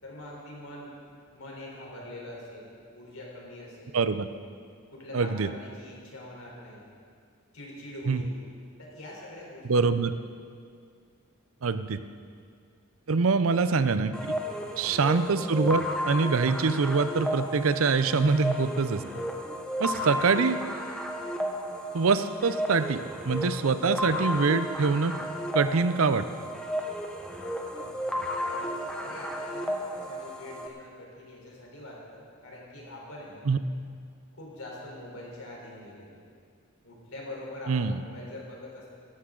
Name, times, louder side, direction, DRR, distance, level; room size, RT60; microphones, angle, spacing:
voice 1, 0.0-0.9 1.3-4.0 4.9-6.8 7.5-8.4 8.8-9.9 14.5-14.8 19.8-20.0 25.0-25.3 27.7-27.9 28.4-33.5 34.3-36.2 36.8-38.9, left 1 dB, 85° left, -3 dB, 3.9 m, -44 dB
voice 2, 3.9-4.3 5.1-5.5 8.1-8.2 9.7-10.1 11.6-12.0 13.1-14.1 14.8-19.0 19.8-20.6 21.9-23.0 23.2-25.1 25.5-26.2 33.5-33.6 37.7-38.0, right 4 dB, 75° right, 12 dB, 0.6 m, -24 dB
sound 1, 14.1-30.7, equal, 5° left, 0.9 m, -33 dB
17.5 x 13.0 x 3.9 m, 2.2 s
head